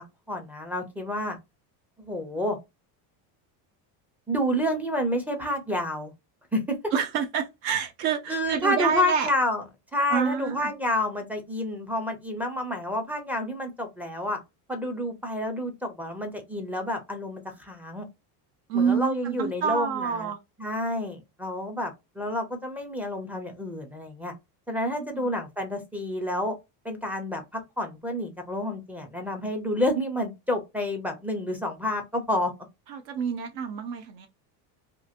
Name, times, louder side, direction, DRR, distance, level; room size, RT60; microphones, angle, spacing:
voice 1, 0.0-1.4 2.0-2.6 4.3-6.1 6.5-6.8 8.3-9.6 9.9-14.4 14.7-18.1 18.7-20.3 20.6-24.3 24.7-26.6 26.8-32.5, left 1 dB, 5° right, 0.4 m, -29 dB
voice 2, 6.9-9.3 10.1-10.7 18.7-20.4 25.0-25.3 32.9-34.3, right 7 dB, 60° right, 0.7 m, -28 dB
3.0 x 2.5 x 2.4 m
cardioid pair, 145°, 47 cm